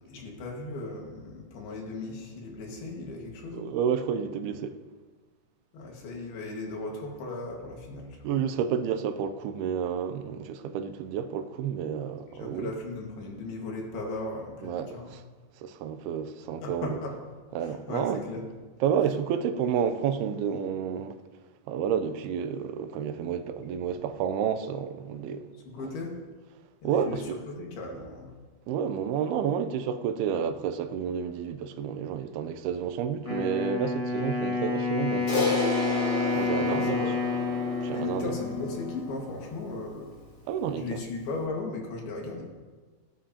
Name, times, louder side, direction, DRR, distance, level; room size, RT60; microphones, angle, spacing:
voice 1, 0.0-3.7 5.7-8.4 12.3-15.2 16.6-17.2 17.6-18.4 25.5-26.1 26.8-28.3 36.3-37.3 37.9-40.2 40.7-42.4, left 2 dB, 75° left, 3.8 m, -37 dB
voice 2, 3.5-4.8 8.2-12.7 14.6-15.2 15.6-17.0 17.6-18.2 18.8-21.2 21.7-25.5 26.8-27.4 28.7-35.6 36.3-37.1 37.8-38.3 40.5-41.0, right 8 dB, 80° right, 2.6 m, -30 dB
Wind instrument woodwind instrument, 33.2-39.2, left 4 dB, 55° left, 0.3 m, -29 dB
Crash cymbal, 35.3-39.9, left 2 dB, 40° left, 4.7 m, -32 dB
18.0 x 9.8 x 2.9 m
omnidirectional pair, 4.5 m